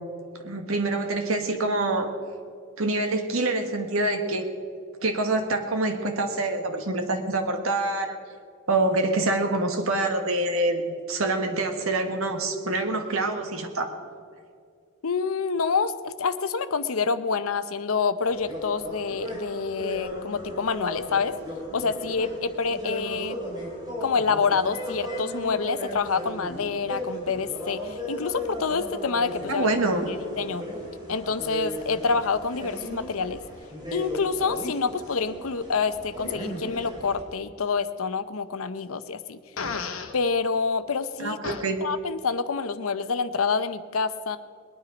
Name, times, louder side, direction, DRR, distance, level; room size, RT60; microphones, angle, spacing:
voice 1, 0.4-2.1 2.8-4.5 5.0-8.2 8.7-13.9 29.5-30.1 41.2-41.8, right 2 dB, 85° right, 5 dB, 1.4 m, -26 dB
voice 2, 15.0-21.4 21.7-23.4 24.0-29.7 30.1-30.7 31.1-33.4 33.9-39.4 40.1-41.4 41.8-44.4, left 5 dB, 85° left, 12 dB, 0.7 m, -27 dB
sound 1, 18.2-37.2, equal, 20° right, 3.8 m, -36 dB
Fart, 39.6-40.1 41.4-41.6, left 5 dB, 70° left, 1.2 m, -31 dB
21.0 x 9.5 x 5.2 m, 2.2 s
head